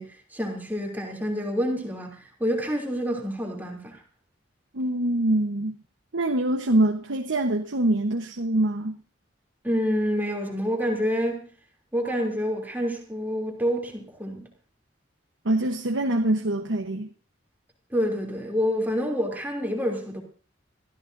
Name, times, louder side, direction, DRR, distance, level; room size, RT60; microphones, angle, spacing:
voice 1, 0.0-4.0 9.6-11.4 11.9-14.5 17.9-20.2, equal, 10° right, 3.0 m, -27 dB
voice 2, 4.7-5.8 6.1-9.0 15.4-17.1, right 1 dB, 85° right, 1.1 m, -24 dB
25.0 x 14.0 x 2.7 m
head